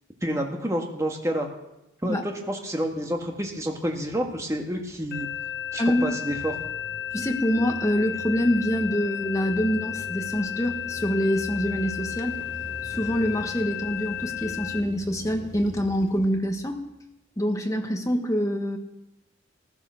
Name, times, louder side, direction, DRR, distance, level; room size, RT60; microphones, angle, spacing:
voice 1, 0.2-1.5 2.0-5.3 5.7-6.5, equal, 15° right, 2 dB, 1.7 m, -29 dB
sound 1, 2.7-17.1, right 1 dB, 35° right, 3.6 m, -44 dB
sound 2, 5.1-14.8, left 10 dB, 55° left, 1.1 m, -33 dB
voice 2, 7.1-12.4 12.8-16.8 17.4-18.8, equal, 15° left, 4 dB, 1.4 m, -25 dB
15.0 x 12.0 x 6.4 m, 0.92 s
head